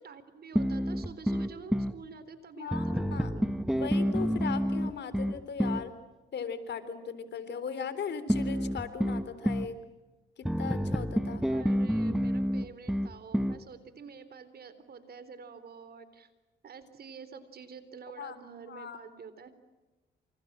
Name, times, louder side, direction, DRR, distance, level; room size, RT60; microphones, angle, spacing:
voice 1, 0.0-3.6 11.5-16.3 16.6-19.5, right 5 dB, 50° right, 13 dB, 3.9 m, -48 dB
sound 1, 0.6-2.0 2.7-5.9 8.3-9.7 10.4-13.6, equal, ahead, 1.1 m, -29 dB
voice 2, 2.6-3.3 3.7-5.9 6.3-9.8 10.4-11.4 18.2-18.4 18.7-19.0, left 6 dB, 60° left, 12 dB, 3.9 m, -38 dB
28.5 x 28.0 x 7.5 m, 1.1 s
cardioid pair, 90°, 20 cm